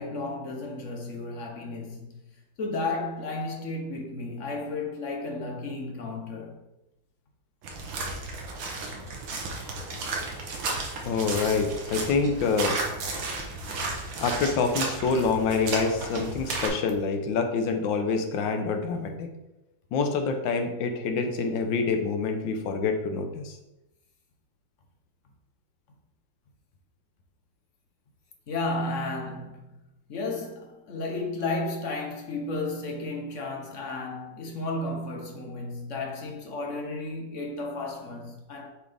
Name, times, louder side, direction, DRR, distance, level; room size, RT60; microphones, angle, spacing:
voice 1, 0.0-2.2 2.6-6.6 13.7-13.8 28.5-29.7 30.1-38.7, left 2 dB, 50° left, 1.0 m, -33 dB
sound 1, 7.6-16.7, right 3 dB, 85° right, 1.8 m, -33 dB
voice 2, 11.0-12.8 14.2-19.3 19.9-23.6, left 4 dB, 85° left, 1.5 m, -26 dB
7.3 x 4.1 x 3.4 m
omnidirectional pair, 2.0 m